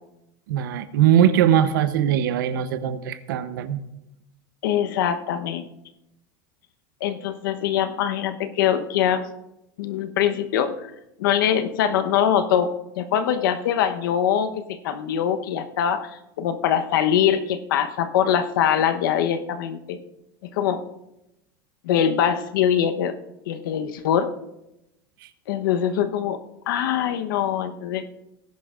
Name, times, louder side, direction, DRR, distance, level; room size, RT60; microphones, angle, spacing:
voice 1, 0.5-3.8, right 10 dB, 85° right, 12 dB, 0.9 m, -20 dB
voice 2, 4.6-5.7 7.0-9.2 9.8-10.9 11.2-12.7 13.0-16.1 16.4-20.0 20.4-20.8 21.8-23.1 23.5-24.3 25.5-26.4 26.7-28.0, left 9 dB, 80° left, 8 dB, 1.0 m, -23 dB
19.0 x 10.5 x 2.5 m, 0.89 s
supercardioid pair, 165°, 11 cm